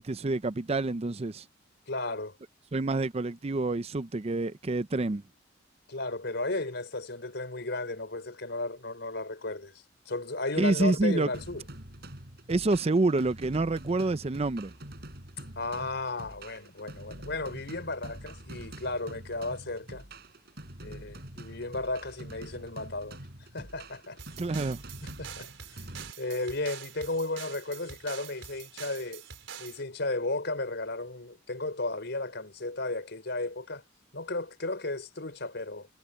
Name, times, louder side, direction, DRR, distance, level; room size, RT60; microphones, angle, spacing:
voice 1, 0.0-1.5 2.7-5.2 10.6-11.3 12.5-14.7 24.4-24.8, right 2 dB, 35° right, 0.5 m, -27 dB
voice 2, 1.9-2.4 5.9-11.6 15.6-20.0 20.8-23.2 23.5-24.2 25.0-25.9 26.2-29.2 29.6-33.8 34.1-35.9, left 2 dB, 65° left, 5.1 m, -34 dB
sound 1, 11.3-26.1, right 1 dB, 55° right, 6.8 m, -45 dB
sound 2, 24.2-29.8, right 8 dB, 80° right, 4.3 m, -45 dB
head